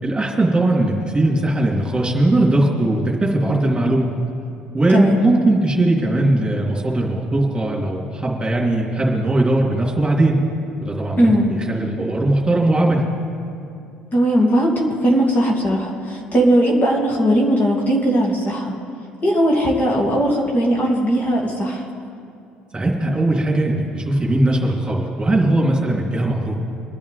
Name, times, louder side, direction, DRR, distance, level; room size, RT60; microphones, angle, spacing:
voice 1, 0.0-4.1 4.7-10.4 10.8-13.0 22.7-26.5, right 1 dB, 20° right, -2 dB, 3.1 m, -19 dB
voice 2, 11.2-11.5 14.1-18.7 19.2-21.8, equal, 40° left, -1 dB, 2.7 m, -18 dB
23.5 x 10.5 x 3.5 m, 2.6 s
hypercardioid pair, 60°, 5 cm